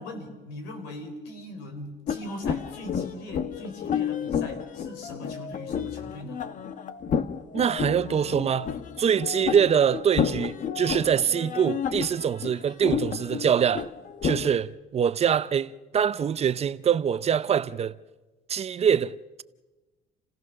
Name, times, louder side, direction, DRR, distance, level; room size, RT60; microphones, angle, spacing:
voice 1, 0.0-6.4, left 1 dB, 90° left, 4.0 m, -40 dB
sound 1, 2.1-14.5, left 7 dB, 50° left, 1.1 m, -31 dB
voice 2, 7.5-8.7 9.0-13.9 14.2-17.9 18.5-19.4, right 8 dB, 40° right, 0.6 m, -24 dB
29.0 x 16.0 x 6.4 m
cardioid pair, 110°, 17 cm